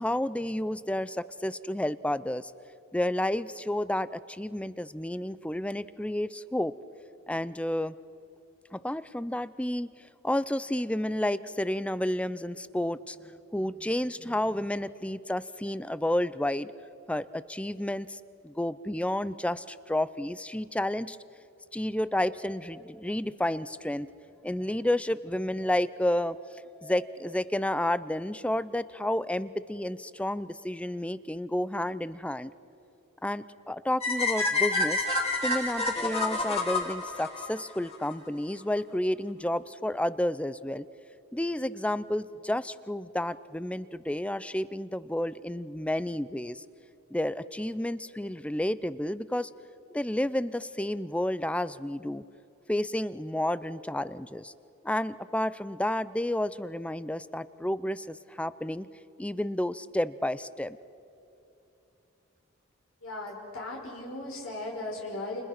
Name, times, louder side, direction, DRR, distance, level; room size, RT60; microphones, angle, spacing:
voice 1, 0.0-2.5 2.9-6.7 7.3-8.0 8.7-9.9 10.2-16.7 17.1-21.2 21.7-24.1 24.4-32.5 33.2-35.1 35.4-40.8 41.3-46.6 47.1-49.5 49.9-52.2 52.7-54.5 54.8-58.9 59.2-60.8, left 1 dB, 5° left, 16 dB, 0.5 m, -31 dB
sound 1, 34.0-38.1, left 2 dB, 30° left, 2.9 m, -28 dB
voice 2, 63.0-65.4, left 2 dB, 80° left, -2 dB, 5.2 m, -37 dB
30.0 x 29.0 x 6.0 m, 2.9 s
head